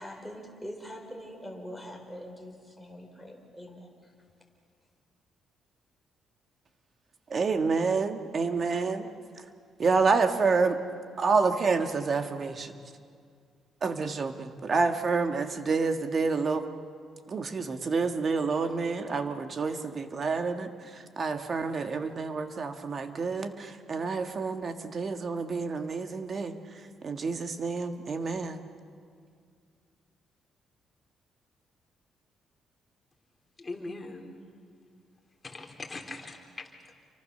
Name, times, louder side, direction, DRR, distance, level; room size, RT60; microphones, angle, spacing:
voice 1, 0.0-4.1, equal, 5° right, 3 dB, 4.5 m, -43 dB
voice 2, 7.3-9.1 9.8-10.8 11.2-12.7 13.8-16.6 17.3-26.5 27.0-28.7, right 4 dB, 45° right, 7 dB, 1.8 m, -28 dB
voice 3, 33.6-34.3 35.4-36.9, left 2 dB, 25° left, 2 dB, 3.6 m, -41 dB
28.5 x 24.0 x 6.8 m, 2.2 s
cardioid pair, 90°, 0 cm